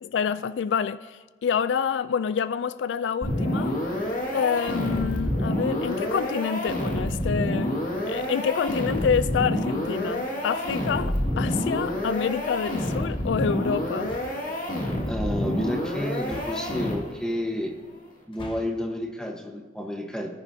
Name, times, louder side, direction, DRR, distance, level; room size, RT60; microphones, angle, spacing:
voice 1, 0.0-3.7 4.3-7.8 8.1-14.2, left 7 dB, 80° left, 0.3 m, -27 dB
sound 1, 3.2-17.3, left 1 dB, 50° left, 2.0 m, -28 dB
sound 2, 8.9-9.5 11.4-12.0 14.0-14.5 16.2-17.0 18.2-18.9, left 1 dB, 30° left, 0.9 m, -43 dB
voice 2, 15.1-17.8 18.3-20.3, left 1 dB, 5° left, 1.1 m, -31 dB
19.0 x 9.7 x 2.8 m
head